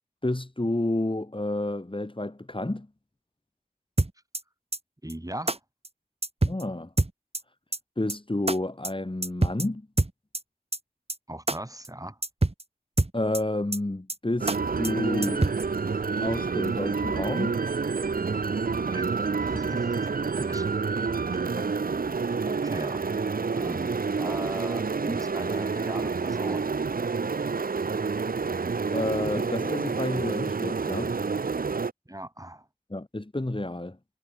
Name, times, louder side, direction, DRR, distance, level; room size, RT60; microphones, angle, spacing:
voice 1, 0.2-2.9 6.4-6.9 8.0-9.9 13.1-15.5 16.2-17.6 28.9-31.2 32.9-34.0, left 1 dB, 35° left, 4.2 m, -30 dB
sound 1, 4.0-4.4 4.7-4.8 5.1-5.2 5.5-5.6 5.8-5.9 6.2-6.6 7.0-7.4 7.7-7.8 8.1-8.2 8.5-8.6 8.8-8.9 9.2-9.7 10.0-10.4 10.7-10.8 11.1-11.2 11.5-11.6 11.8-11.9 12.2-12.6 13.0-13.4 13.7-13.8 14.1-14.2 14.5-14.6 14.8-14.9 15.2-15.6, right 2 dB, 40° right, 2.7 m, -25 dB
voice 2, 5.0-5.6 11.3-12.2 18.9-19.1 19.4-20.1 20.4-20.7 22.4-23.0 23.6-26.7 32.1-32.7, right 1 dB, 25° right, 7.5 m, -38 dB
sound 2, 14.4-31.9, right 4 dB, 75° right, 0.7 m, -28 dB
wide cardioid pair, 55°, 15 cm